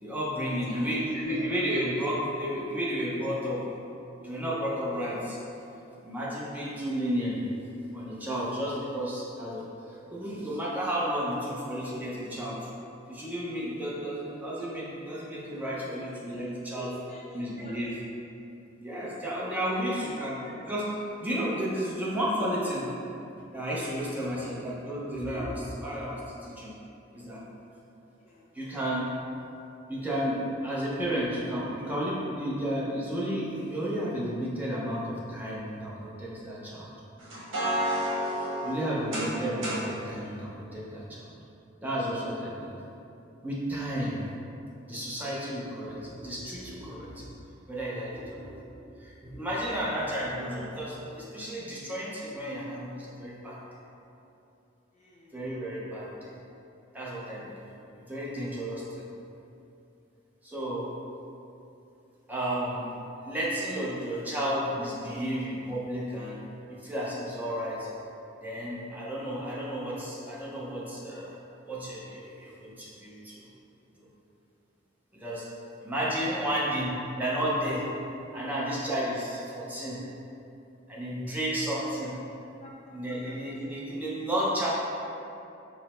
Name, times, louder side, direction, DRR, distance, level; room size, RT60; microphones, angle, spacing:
voice 1, 0.0-3.6 4.2-5.4 6.0-7.4 7.9-12.7 13.1-16.9 17.3-17.9 18.8-22.9 23.5-26.7 27.1-27.4 28.5-29.1 29.9-36.9 38.6-41.3 41.8-42.8 43.4-44.2 44.8-47.4 47.7-53.6 55.3-56.3 56.9-57.7 57.9-59.1 60.4-60.9 62.3-62.9 63.2-66.4 66.7-67.9 68.4-71.4 71.6-73.4 74.0-74.1 75.1-75.5 75.8-77.9 78.3-80.0 80.9-82.1 82.9-84.7, equal, 10° right, -7 dB, 0.6 m, -32 dB
voice 2, 0.6-1.4 15.5-15.6 15.9-18.0 19.7-20.6 24.4-24.6 28.2-28.5 54.9-55.4 76.4-76.7 82.6-83.8, equal, 35° left, -4 dB, 0.4 m, -49 dB
sound 1, 37.2-39.9, right 1 dB, 75° right, 1.0 m, -31 dB
4.7 x 2.0 x 4.3 m, 2.8 s
head